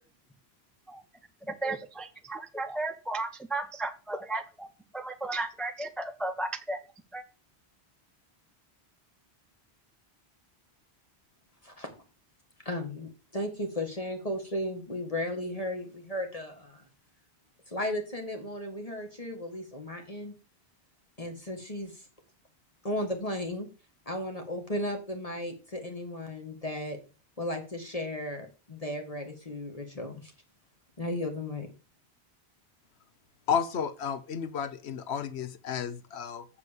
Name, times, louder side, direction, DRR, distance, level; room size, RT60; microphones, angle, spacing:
voice 1, 1.5-4.7 4.9-6.8 7.1-7.2, right 2 dB, ahead, 8 dB, 0.6 m, -34 dB
voice 2, 12.7-16.9 17.7-20.3 21.2-22.1 22.8-23.7 24.1-27.0 27.4-30.3 31.0-31.7, left 1 dB, 35° left, 3 dB, 1.8 m, -35 dB
voice 3, 33.5-36.5, left 7 dB, 80° left, 13 dB, 1.1 m, -32 dB
8.2 x 5.0 x 6.8 m, 0.34 s
omnidirectional pair, 1.1 m